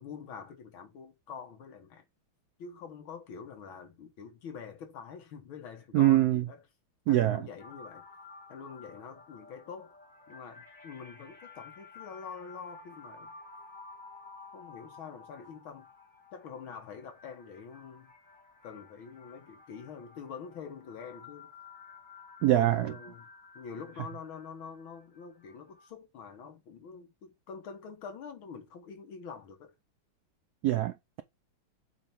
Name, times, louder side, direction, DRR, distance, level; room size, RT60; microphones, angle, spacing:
voice 1, 0.0-2.0 2.6-6.6 7.1-8.1 8.5-9.9 10.3-13.3 14.5-15.9 16.3-18.1 18.6-21.5 22.5-23.3 23.6-29.7, left 6 dB, 75° left, 2.1 m, -45 dB
voice 2, 5.9-6.4 7.1-7.4 22.4-22.9 30.6-31.2, right 14 dB, 85° right, 0.8 m, -24 dB
sound 1, 7.6-25.9, left 4 dB, 5° left, 1.9 m, -53 dB
7.6 x 3.4 x 5.6 m
omnidirectional pair, 2.2 m